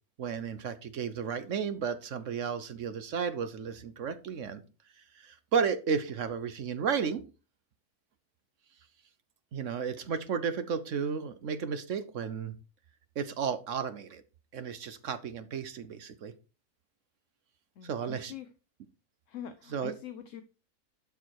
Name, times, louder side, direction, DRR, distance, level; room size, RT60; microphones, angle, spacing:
voice 1, 0.2-4.6 5.2-7.2 9.5-12.5 13.2-14.2 14.5-16.3 17.8-18.3 19.7-19.9, right 6 dB, 60° right, 12 dB, 1.1 m, -33 dB
voice 2, 17.8-18.5 19.3-20.4, left 8 dB, 60° left, 10 dB, 1.0 m, -44 dB
12.0 x 4.8 x 4.6 m, 0.32 s
omnidirectional pair, 1.6 m